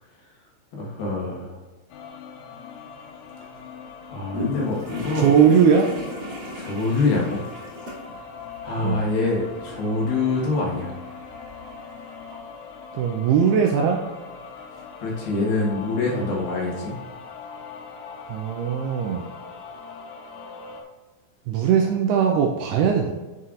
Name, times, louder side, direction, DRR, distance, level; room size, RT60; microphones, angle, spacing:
voice 1, 0.7-1.5 4.1-5.3 6.5-7.4 8.6-10.9 15.0-16.9, left 3 dB, 65° left, -3 dB, 2.9 m, -25 dB
sound 1, 1.9-20.8, left 5 dB, 90° left, 3.3 m, -41 dB
sound 2, 4.3-12.4, left 1 dB, 35° right, 2.1 m, -37 dB
voice 2, 5.1-5.9 8.8-9.0 12.9-14.0 18.3-19.2 21.5-23.1, right 7 dB, 80° right, 2 dB, 2.4 m, -19 dB
9.5 x 5.7 x 2.5 m, 1.2 s
omnidirectional pair, 5.2 m